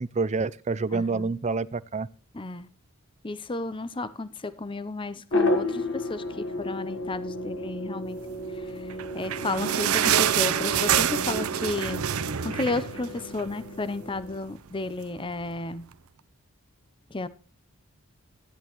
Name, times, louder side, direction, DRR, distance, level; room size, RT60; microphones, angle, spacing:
voice 1, 0.0-2.1, right 4 dB, 30° right, 0.4 m, -28 dB
voice 2, 0.9-1.3 2.3-2.7 3.2-8.2 8.5-12.0 12.4-15.8 17.1-17.3, left 2 dB, 25° left, 0.7 m, -33 dB
sound 1, 5.3-14.4, left 1 dB, 60° left, 1.5 m, -33 dB
sound 2, 8.8-13.6 14.0-14.1 14.3-14.5 15.2-15.3, right 9 dB, 85° right, 0.6 m, -26 dB
14.0 x 10.5 x 3.0 m
head